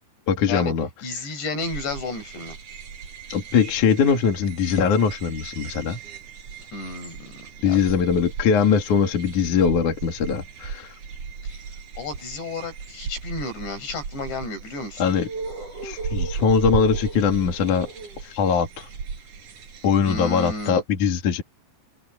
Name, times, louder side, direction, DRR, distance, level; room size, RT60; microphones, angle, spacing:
voice 1, 0.3-0.9 3.3-6.0 7.6-10.9 15.0-15.3 15.8-17.9 18.2-18.9 19.8-21.4, left 6 dB, 50° left, 3.5 m, -21 dB
voice 2, 1.0-2.6 6.7-7.8 11.4-11.6 12.0-15.0 20.1-20.8, left 3 dB, 80° left, 10.0 m, -32 dB
sound 1, 1.6-20.7, right 5 dB, 50° right, 5.6 m, -36 dB
omnidirectional pair, 4.9 m